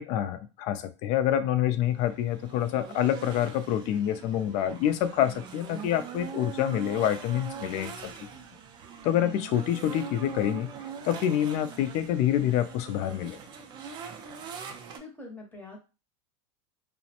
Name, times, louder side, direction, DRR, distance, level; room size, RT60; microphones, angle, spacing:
voice 1, 0.0-8.1 9.0-10.7 11.0-13.4, left 11 dB, 45° left, 10 dB, 0.4 m, -27 dB
sound 1, 1.8-15.0, right 7 dB, 25° right, 0.3 m, -42 dB
voice 2, 14.9-15.8, left 2 dB, 10° left, 1 dB, 0.7 m, -44 dB
2.4 x 2.0 x 2.8 m, 0.31 s
supercardioid pair, 140°, 17 cm